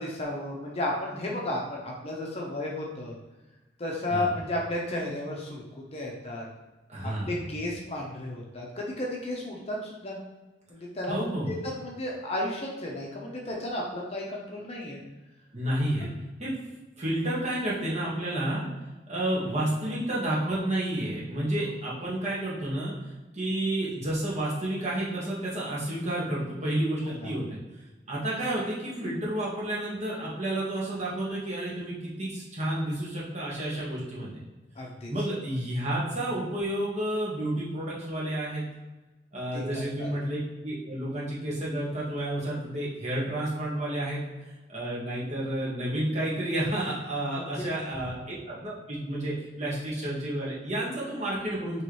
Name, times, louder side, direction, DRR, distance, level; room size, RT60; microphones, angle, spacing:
voice 1, 0.0-3.1 3.8-5.6 5.9-6.5 7.0-10.2 10.7-15.0 16.0-16.1 27.0-27.3 34.8-35.1 39.5-39.6 40.0-40.1 47.4-47.7, left 1 dB, 35° left, -2 dB, 0.7 m, -33 dB
voice 2, 6.9-7.4 11.1-11.5 15.5-16.1 16.4-16.5 17.0-18.6 19.1-22.9 23.3-27.6 28.1-34.3 35.1-38.6 39.3-44.2 44.7-51.8, right 1 dB, 40° right, -7 dB, 1.5 m, -30 dB
4.6 x 3.1 x 3.1 m, 1.1 s
head